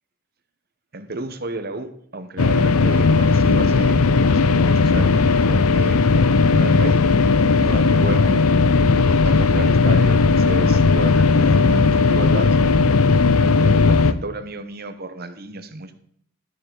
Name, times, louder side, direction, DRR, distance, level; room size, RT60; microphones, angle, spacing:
voice 1, 0.9-4.0 4.3-6.0 6.5-7.0 7.5-8.4 9.2-12.8 13.6-15.9, right 2 dB, 45° right, 10 dB, 0.9 m, -32 dB
sound 1, 2.4-14.1, left 4 dB, 85° left, 0.6 m, -16 dB
12.5 x 6.9 x 3.9 m, 0.69 s
head